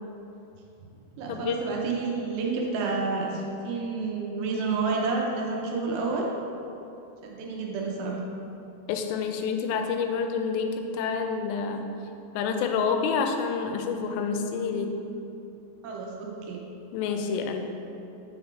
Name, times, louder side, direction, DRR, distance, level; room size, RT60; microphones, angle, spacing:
voice 1, 1.1-6.3 7.2-8.2 15.8-16.6, right 4 dB, 80° right, -1 dB, 2.9 m, -29 dB
voice 2, 8.9-11.9 12.3-14.9 16.9-17.6, left 5 dB, 85° left, 5 dB, 2.6 m, -28 dB
6.5 x 4.0 x 4.5 m, 2.9 s
omnidirectional pair, 5.0 m